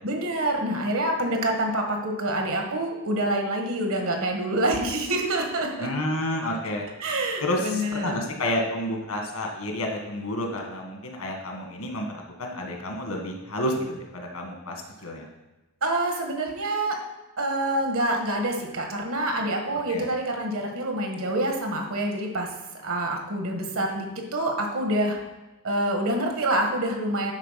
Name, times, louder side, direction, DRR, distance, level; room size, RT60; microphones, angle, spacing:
voice 1, 0.0-5.9 7.0-8.2 15.8-16.9 17.4-22.5 22.8-25.2 25.6-27.3, right 1 dB, 70° right, 2 dB, 1.6 m, -26 dB
voice 2, 5.8-6.9 7.4-14.7 15.0-15.3 19.9-20.1, left 1 dB, 80° left, 2 dB, 1.6 m, -30 dB
9.9 x 4.4 x 5.8 m, 1.1 s
head